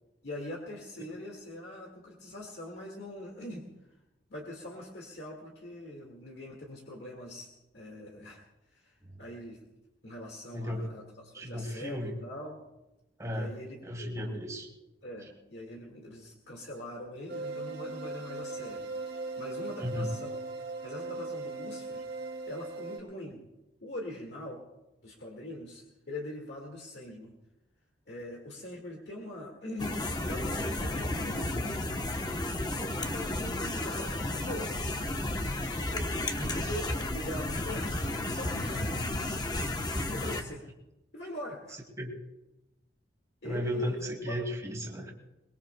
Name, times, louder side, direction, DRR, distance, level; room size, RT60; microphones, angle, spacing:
voice 1, 0.2-3.7 4.3-7.5 7.7-8.4 8.7-9.6 10.0-12.6 13.3-14.4 15.0-18.9 19.4-20.4 20.8-23.4 23.8-24.6 25.0-27.3 28.1-31.8 32.7-35.0 35.9-36.1 36.6-38.1 38.4-39.3 40.0-40.7 41.1-41.8 43.4-44.0 44.3-44.4, left 1 dB, 65° left, -1 dB, 1.9 m, -42 dB
voice 2, 10.5-10.9 11.3-12.1 13.2-13.6 13.8-14.7 19.8-20.2 36.4-36.7 42.0-42.1 43.4-45.1, equal, 20° right, 1 dB, 2.2 m, -34 dB
sound 1, 17.3-23.0, right 3 dB, 65° right, 3.2 m, -38 dB
sound 2, 29.8-40.4, left 2 dB, 25° left, 0.9 m, -33 dB
23.0 x 21.5 x 2.2 m, 0.97 s
head